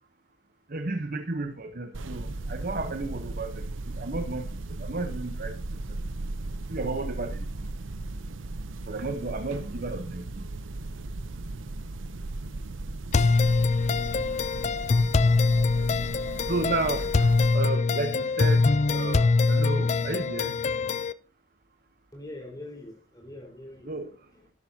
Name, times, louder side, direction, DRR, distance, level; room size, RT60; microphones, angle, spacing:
voice 1, 0.7-3.7 4.0-5.5 6.7-7.5 8.9-10.5 16.5-17.1 17.5-20.5 23.8-24.1, right 2 dB, 45° right, 0.9 m, -32 dB
sound 1, 1.9-17.5, right 2 dB, 75° right, 0.7 m, -36 dB
sound 2, 13.1-21.1, left 3 dB, 35° left, 0.4 m, -23 dB
voice 2, 22.1-24.5, left 1 dB, 20° left, 4.4 m, -44 dB
12.5 x 11.5 x 2.8 m
head